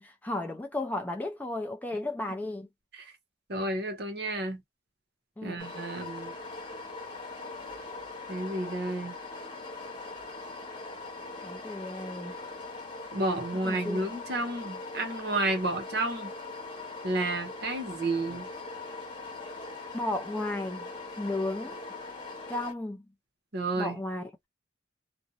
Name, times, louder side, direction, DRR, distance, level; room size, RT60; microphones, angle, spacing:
voice 1, 0.0-2.7 5.4-5.7 11.4-12.3 13.6-14.0 19.9-20.9 21.2-21.8 22.5-23.0 23.8-24.3, left 2 dB, 10° left, 0.3 m, -34 dB
voice 2, 3.5-4.6 5.4-6.3 8.3-9.2 13.1-16.3 17.0-18.5 23.5-24.0, right 2 dB, 55° right, 0.7 m, -31 dB
sound 1, 5.6-22.7, left 3 dB, 25° left, 0.9 m, -41 dB
2.4 x 2.0 x 2.7 m
head